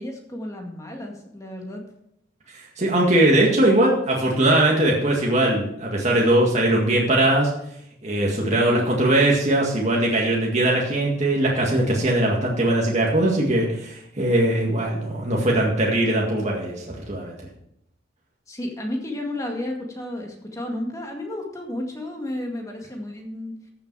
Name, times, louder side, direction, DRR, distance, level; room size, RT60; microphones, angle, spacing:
voice 1, 0.0-1.8 8.5-8.9 18.5-23.5, left 1 dB, 15° left, 1 dB, 2.0 m, -32 dB
voice 2, 2.5-7.5 8.0-17.4, right 1 dB, 35° right, -3 dB, 1.9 m, -20 dB
14.0 x 7.0 x 4.8 m, 0.77 s
head